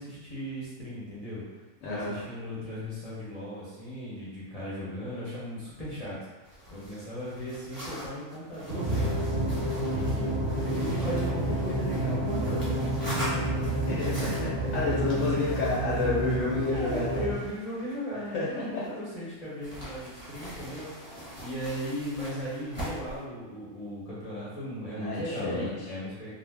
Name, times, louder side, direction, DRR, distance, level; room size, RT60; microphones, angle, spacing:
voice 1, 0.0-1.6 1.9-6.2 6.7-9.2 9.9-13.6 14.5-15.4 16.7-20.9 21.4-26.3, equal, 40° left, -9 dB, 0.6 m, -37 dB
voice 2, 1.8-2.1 13.9-17.3 18.3-18.8 25.0-25.9, left 3 dB, 75° left, -7 dB, 1.0 m, -30 dB
sound 1, 6.4-19.1 19.6-23.2, equal, 10° right, 0.8 m, -43 dB
sound 2, 8.7-17.3, right 1 dB, 45° right, 0.6 m, -29 dB
2.5 x 2.0 x 3.3 m, 1.2 s
omnidirectional pair, 1.4 m